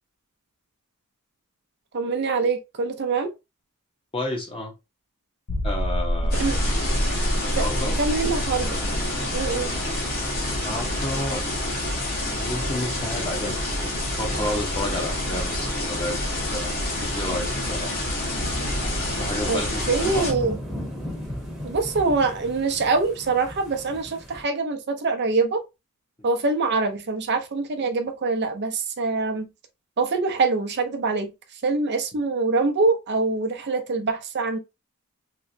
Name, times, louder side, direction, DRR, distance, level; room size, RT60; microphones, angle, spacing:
voice 1, 1.9-3.3 6.4-6.6 7.5-8.8 9.3-9.7 19.5-19.6 19.9-20.6 21.6-25.6 26.2-29.5 30.0-31.3 31.6-34.6, right 3 dB, 50° right, 0.6 m, -24 dB
voice 2, 4.1-4.7 5.6-6.5 7.4-8.0 10.5-11.4 12.3-13.6 14.2-16.7 17.0-18.0 19.2-20.3, left 1 dB, 25° left, 0.9 m, -31 dB
sound 1, 5.5-10.9 11.2-11.3 11.8-11.9, equal, 70° left, 0.6 m, -28 dB
sound 2, 6.3-20.3, left 1 dB, 45° left, 1.2 m, -28 dB
sound 3, 7.9-24.4, equal, ahead, 0.9 m, -40 dB
3.0 x 2.9 x 2.7 m
head